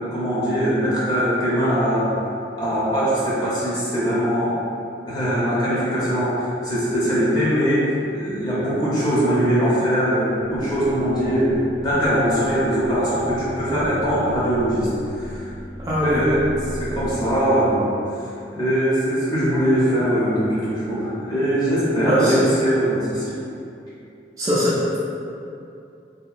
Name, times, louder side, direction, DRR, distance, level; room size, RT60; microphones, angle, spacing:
voice 1, 0.1-2.1 2.6-4.6 5.1-15.5 16.0-16.5 16.7-17.9 18.5-23.4, equal, 25° left, -9 dB, 0.6 m, -21 dB
sound 1, 10.4-17.4, equal, 90° left, 1.2 m, -36 dB
voice 2, 15.8-16.2 22.0-22.4 24.4-25.0, equal, 20° right, -10 dB, 0.3 m, -21 dB
2.8 x 2.2 x 2.4 m, 2.6 s
head